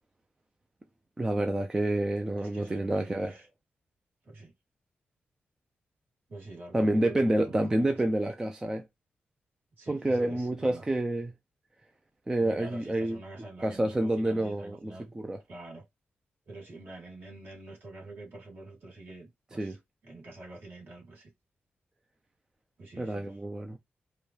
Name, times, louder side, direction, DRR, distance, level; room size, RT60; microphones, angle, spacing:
voice 1, 1.2-3.4 6.7-8.8 9.9-11.3 12.3-13.2 13.6-15.4 19.6-19.8 23.0-23.8, right 1 dB, 15° right, 0.6 m, -28 dB
voice 2, 2.4-3.5 4.2-4.5 6.3-8.0 9.8-11.0 12.4-15.1 15.5-15.8 16.5-19.8 20.0-21.3 22.8-23.4, right 2 dB, 55° right, 3.0 m, -46 dB
4.9 x 2.3 x 3.2 m
wide cardioid pair, 120°, 4 cm